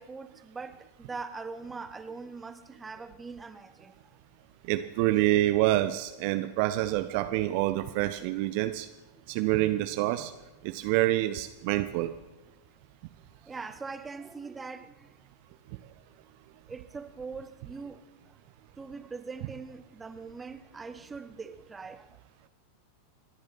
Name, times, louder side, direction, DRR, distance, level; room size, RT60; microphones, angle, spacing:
voice 1, 0.0-4.0 13.4-15.1 16.7-18.0 18.8-22.2, right 4 dB, 15° right, 11 dB, 1.1 m, -42 dB
voice 2, 4.7-8.9 9.3-10.3 10.6-12.1, right 16 dB, 45° right, 10 dB, 0.7 m, -27 dB
29.0 x 10.5 x 4.3 m, 1.0 s
figure-of-eight pair, 90°, 0 cm